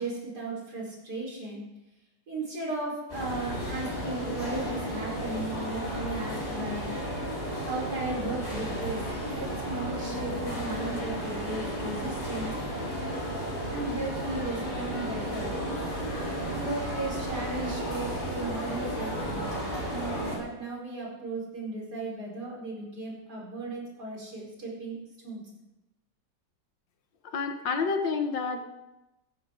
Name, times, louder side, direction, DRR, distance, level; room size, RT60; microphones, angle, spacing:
voice 1, 0.0-1.6 2.3-6.9 7.6-12.6 13.7-15.5 16.6-25.0 25.2-25.4, right 2 dB, 65° right, -4 dB, 5.1 m, -36 dB
sound 1, 3.1-20.4, equal, 20° left, 5.3 m, -33 dB
voice 2, 27.2-28.6, left 5 dB, 90° left, 6 dB, 2.0 m, -29 dB
17.0 x 13.0 x 3.8 m, 0.97 s
omnidirectional pair, 1.9 m